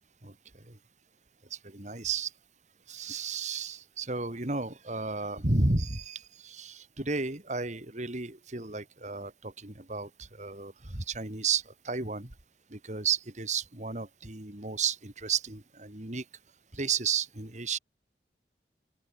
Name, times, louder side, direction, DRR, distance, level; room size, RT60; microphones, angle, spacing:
voice 1, 1.6-2.3 2.9-10.1 10.4-12.3 12.7-16.2 16.7-17.8, right 4 dB, 40° right, 2.4 m, -32 dB
open air
head